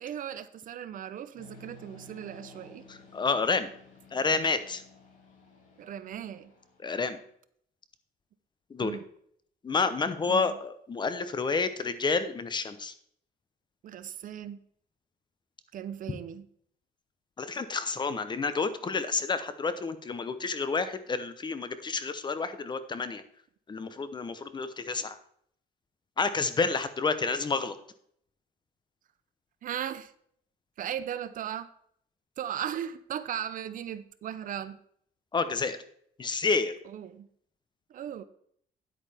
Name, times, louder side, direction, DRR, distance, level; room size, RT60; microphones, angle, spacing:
voice 1, 0.0-2.8 5.8-6.5 8.8-9.0 10.3-10.4 13.8-14.6 15.7-16.4 29.6-30.1 30.8-31.7 32.4-34.8 36.9-37.3 37.9-38.2, right 10 dB, 55° right, 14 dB, 0.6 m, -37 dB
sound 1, 1.4-7.1, left 2 dB, 50° left, 3.0 m, -54 dB
voice 2, 2.9-3.7 4.1-4.8 6.8-7.2 8.7-8.9 9.6-12.9 17.4-23.2 23.7-25.2 26.2-27.8 35.3-35.8 36.2-36.7, left 4 dB, 25° left, 12 dB, 0.8 m, -29 dB
9.8 x 8.6 x 3.5 m, 0.66 s
cardioid pair, 110°, 17 cm